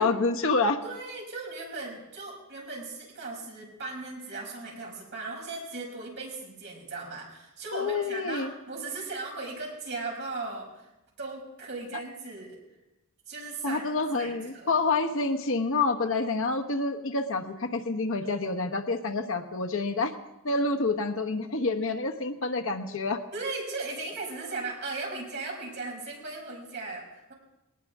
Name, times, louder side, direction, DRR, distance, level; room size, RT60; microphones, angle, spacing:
voice 1, 0.0-0.8 7.7-8.5 13.6-20.1 20.4-23.2, left 3 dB, 65° left, 5 dB, 1.1 m, -28 dB
voice 2, 0.8-10.9 11.2-12.6 13.3-14.7 23.3-27.3, right 3 dB, 55° right, -2 dB, 5.7 m, -37 dB
20.5 x 19.0 x 3.6 m, 0.98 s
head